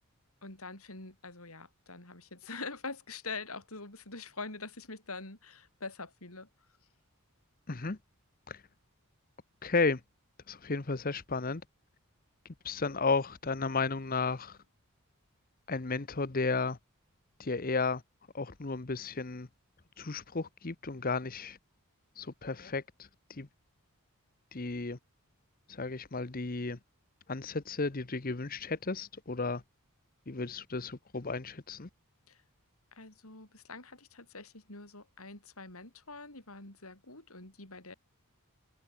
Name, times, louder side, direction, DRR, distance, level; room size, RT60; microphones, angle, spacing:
voice 1, 0.4-6.5 32.3-32.4 32.9-37.9, left 3 dB, 75° left, 6.3 m, -44 dB
voice 2, 7.7-8.0 8.5-8.6 9.6-10.0 10.5-11.6 12.6-14.6 15.7-16.8 17.4-18.0 18.3-19.5 20.0-21.6 22.2-23.5 24.5-25.0 25.7-26.8 27.3-29.6 30.3-31.9, left 4 dB, 40° left, 0.9 m, -33 dB
head